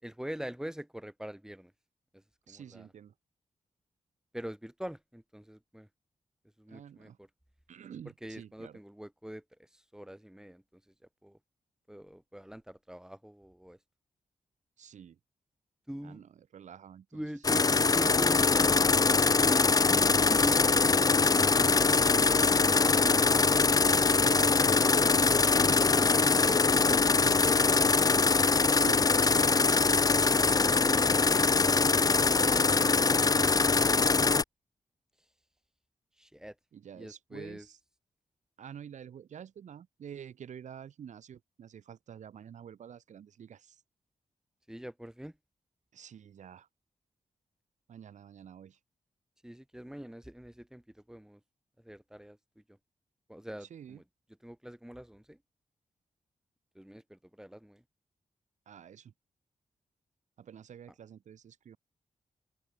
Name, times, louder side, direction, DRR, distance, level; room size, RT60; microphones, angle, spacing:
voice 1, 0.0-1.7 2.1-2.9 4.3-5.9 6.6-7.3 8.2-10.9 11.2-11.4 11.9-13.8 15.9-16.2 17.1-18.7 19.4-20.6 27.4-27.8 30.8-31.6 36.2-36.5 36.9-37.7 44.7-45.3 49.4-51.4 51.8-52.4 53.3-54.0 54.4-55.4 56.7-57.8, equal, 5° right, 6.7 m, -43 dB
voice 2, 2.5-3.1 6.7-7.2 7.7-8.8 14.8-15.2 16.0-17.2 20.6-20.8 21.4-23.8 24.2-24.7 27.2-27.9 28.6-29.6 32.4-33.8 36.7-37.8 38.6-43.8 45.9-46.7 47.9-48.8 53.6-54.0 58.7-59.1 60.4-61.8, right 8 dB, 90° right, 3.1 m, -48 dB
sound 1, 17.4-34.4, left 4 dB, 30° left, 0.7 m, -23 dB
open air
cardioid pair, 90°, 12 cm